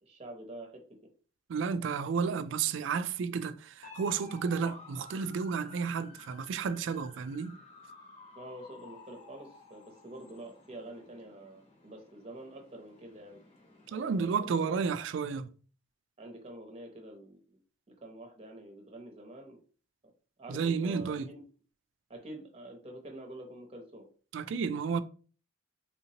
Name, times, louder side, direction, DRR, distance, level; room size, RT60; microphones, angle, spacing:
voice 1, 0.0-0.8 8.4-13.4 13.9-14.9 16.2-17.6 17.9-19.6 20.4-21.4 22.1-24.1, right 1 dB, 30° right, 0.7 m, -47 dB
voice 2, 1.5-7.6 13.9-15.5 20.5-21.3 24.3-25.0, right 5 dB, 65° right, 0.3 m, -32 dB
sound 1, 3.8-14.5, left 2 dB, 35° left, 0.9 m, -54 dB
3.6 x 2.9 x 2.8 m
head